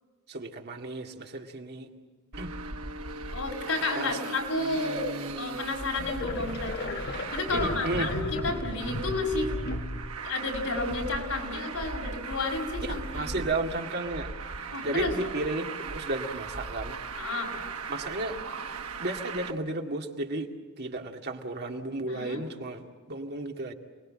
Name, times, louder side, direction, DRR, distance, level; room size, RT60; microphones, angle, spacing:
voice 1, 0.3-1.9 2.4-2.5 3.9-4.1 7.5-8.1 12.8-14.3 14.8-17.0 17.9-18.4 19.0-23.7, right 2 dB, 50° right, 2 dB, 2.2 m, -33 dB
Traffic noise roadway noise, 2.3-19.5, right 3 dB, 85° right, 1.4 m, -37 dB
voice 2, 3.3-5.1 5.4-6.9 7.3-9.5 10.2-13.3 14.7-15.2 17.2-17.5 22.1-22.4, left 2 dB, 80° left, 1 dB, 5.6 m, -31 dB
sound 1, 5.2-5.3 5.9-10.1, left 2 dB, 50° left, 1.4 m, -36 dB
29.0 x 20.5 x 7.6 m, 1.5 s
head